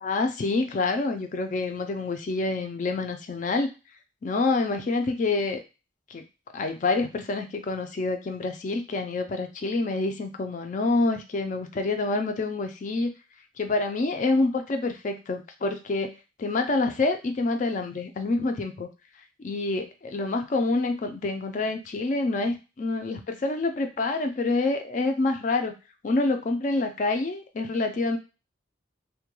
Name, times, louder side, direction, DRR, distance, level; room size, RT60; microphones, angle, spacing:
voice 1, 0.0-3.7 4.2-5.6 6.1-6.2 6.5-13.1 13.6-16.1 16.4-18.9 19.4-25.8 26.0-28.2, left 3 dB, 40° left, 6 dB, 0.3 m, -27 dB
2.2 x 2.1 x 3.0 m, 0.30 s
head